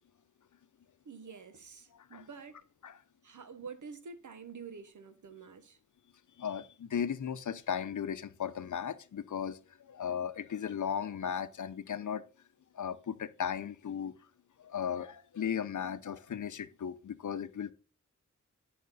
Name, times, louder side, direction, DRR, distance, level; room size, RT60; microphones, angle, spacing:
voice 1, 1.0-2.6 3.2-5.8, right 5 dB, 75° right, 1.2 m, -48 dB
voice 2, 1.9-2.3 2.8-3.0 6.4-12.2 12.7-14.1 14.6-17.7, left 8 dB, 75° left, 0.7 m, -36 dB
10.5 x 5.8 x 4.1 m
wide cardioid pair, 75°, 30 cm